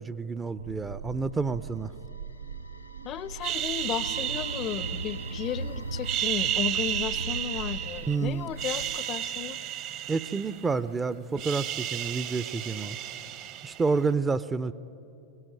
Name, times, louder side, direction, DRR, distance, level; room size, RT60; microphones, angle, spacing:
voice 1, 0.0-1.9 8.1-8.5 10.1-13.0 13.6-14.7, right 4 dB, 15° right, 16 dB, 0.6 m, -29 dB
sound 1, 0.6-9.0, right 3 dB, 75° right, 0.5 m, -39 dB
sound 2, 0.9-11.0, equal, 80° left, 1.0 m, -52 dB
voice 2, 3.0-9.6, left 10 dB, 35° left, 18 dB, 0.6 m, -34 dB
sound 3, 3.4-5.6 6.0-8.2 8.5-10.9 11.2-14.0, right 11 dB, 40° right, 1.1 m, -33 dB
23.0 x 17.0 x 9.1 m, 2.7 s
figure-of-eight pair, 90°, 0 cm